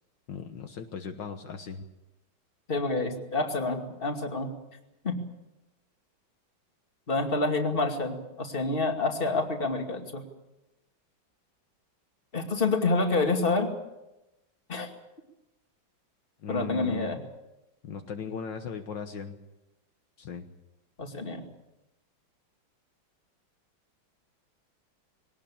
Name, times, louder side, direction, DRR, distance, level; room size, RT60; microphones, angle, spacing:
voice 1, 0.3-1.8 16.4-17.1 17.8-19.4 20.2-20.5, left 6 dB, 65° left, 6 dB, 1.9 m, -38 dB
voice 2, 2.7-4.5 5.0-5.2 7.1-10.2 12.3-13.7 14.7-14.9 16.5-17.2 21.0-21.4, left 3 dB, 25° left, 4 dB, 2.5 m, -28 dB
21.5 x 18.5 x 8.7 m, 0.95 s
omnidirectional pair, 2.2 m